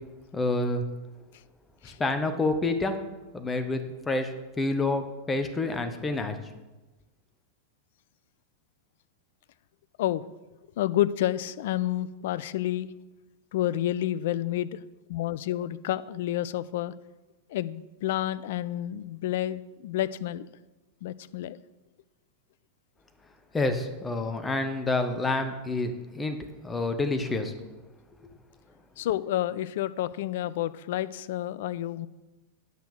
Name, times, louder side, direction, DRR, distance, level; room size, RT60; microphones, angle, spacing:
voice 1, 0.3-0.8 1.8-3.0 3.3-6.4 23.5-26.4 26.6-27.5, left 2 dB, 15° left, 8 dB, 1.1 m, -28 dB
voice 2, 10.8-12.9 13.5-14.8 15.1-16.9 17.5-20.5 21.0-21.6 29.0-32.1, left 13 dB, 55° left, 16 dB, 0.4 m, -29 dB
9.3 x 5.9 x 6.6 m, 1.1 s
figure-of-eight pair, 90°, 0 cm